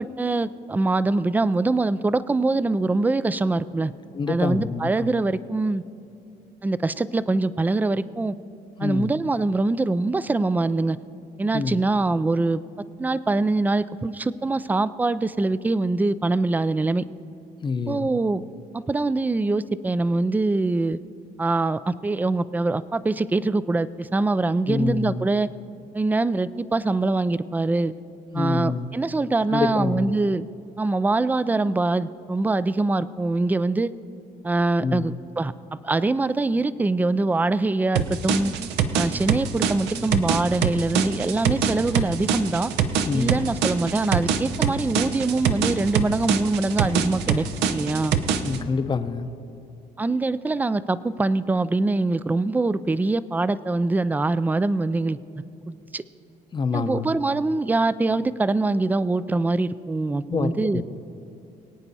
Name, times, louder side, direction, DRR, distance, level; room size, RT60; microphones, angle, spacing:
voice 1, 0.0-3.9 4.3-5.8 6.6-8.4 8.8-11.0 11.4-12.6 13.0-17.0 17.9-18.4 18.7-21.0 21.4-25.5 25.9-27.9 28.3-30.4 30.8-33.9 34.4-38.5 38.9-42.7 43.1-48.2 50.0-55.2 55.7-56.0 56.7-60.8, right 2 dB, 10° right, 16 dB, 0.3 m, -23 dB
voice 2, 4.1-5.2 8.8-9.1 11.5-11.8 17.6-18.1 24.7-25.2 28.3-28.9 29.5-30.1 34.8-35.2 43.0-43.5 48.4-49.3 56.5-57.2 60.3-60.8, left 5 dB, 25° left, 11 dB, 0.7 m, -27 dB
sound 1, 38.0-48.6, right 7 dB, 85° right, 0.8 m, -24 dB
23.5 x 8.8 x 4.2 m, 2.6 s
cardioid pair, 110°, 17 cm